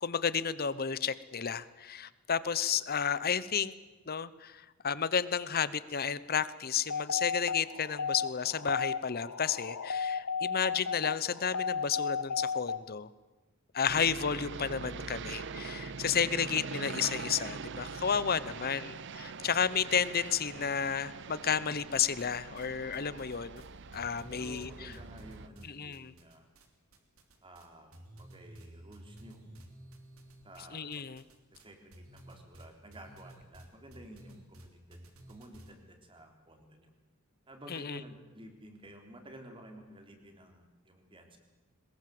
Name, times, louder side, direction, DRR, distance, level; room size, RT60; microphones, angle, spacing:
voice 1, 0.0-3.7 4.1-13.1 13.7-23.6 23.9-24.9 25.6-26.1 30.7-31.2 37.7-38.0, left 7 dB, 45° left, 17 dB, 0.9 m, -32 dB
sound 1, 6.9-12.8, left 5 dB, 85° left, 1.0 m, -34 dB
sound 2, 13.9-25.5, right 5 dB, 55° right, 0.8 m, -43 dB
sound 3, 21.9-22.7 22.9-26.7 26.9-27.7 27.9-35.7, right 1 dB, 80° right, 3.2 m, -53 dB
voice 2, 24.3-26.5 27.4-29.4 30.4-31.0 31.5-36.9 37.5-41.4, equal, 25° right, 4 dB, 3.5 m, -52 dB
22.5 x 20.5 x 7.8 m, 1.2 s
head